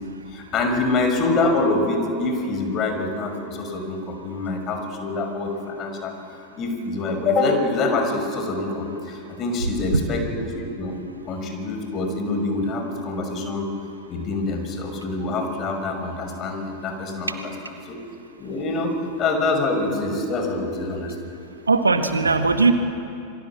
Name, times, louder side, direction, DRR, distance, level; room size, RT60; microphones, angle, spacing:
voice 1, 0.3-6.1 6.6-10.9 11.3-13.7 14.1-17.5 17.9-18.0 18.4-18.9 19.2-21.3, left 3 dB, 30° left, 5 dB, 6.0 m, -25 dB
voice 2, 21.7-22.7, right 4 dB, 75° right, 7 dB, 1.8 m, -18 dB
27.5 x 23.5 x 7.5 m, 2.6 s
figure-of-eight pair, 90°, 0 cm